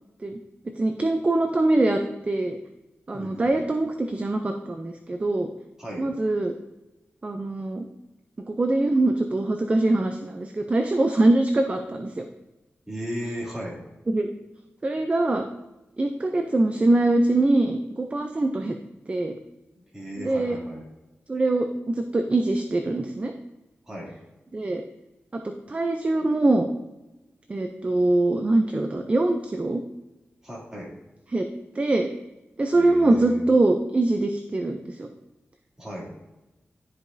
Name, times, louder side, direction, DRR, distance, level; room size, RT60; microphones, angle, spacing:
voice 1, 0.8-2.6 3.1-5.5 6.0-6.5 7.2-7.9 8.5-12.3 14.1-14.3 14.8-15.4 16.0-18.7 19.1-19.4 20.2-20.6 21.3-23.3 24.5-24.8 25.3-26.7 27.5-29.8 31.3-31.5 31.8-32.1 32.6-35.1, right 2 dB, 30° right, 5 dB, 0.5 m, -23 dB
voice 2, 3.1-3.5 5.8-6.1 12.9-13.8 19.9-20.8 23.9-24.1 30.4-30.9 32.7-33.4 35.8-36.1, equal, 10° right, -5 dB, 2.7 m, -35 dB
12.0 x 4.9 x 2.6 m, 1.0 s
wide cardioid pair, 95°, 5 cm